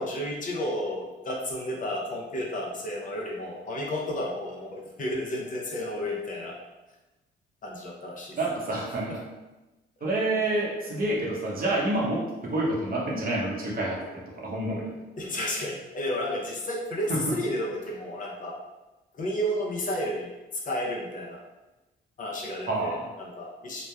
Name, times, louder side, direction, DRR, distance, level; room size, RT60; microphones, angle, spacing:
voice 1, 0.0-6.5 7.6-8.4 15.2-18.6 19.1-21.4 22.2-23.8, left 1 dB, 40° left, -2 dB, 0.6 m, -32 dB
voice 2, 8.4-9.2 10.0-15.0 17.1-17.4 22.7-23.1, right 2 dB, 45° right, -3 dB, 0.8 m, -28 dB
2.9 x 2.1 x 2.2 m, 1.1 s
cardioid pair, 90°, 20 cm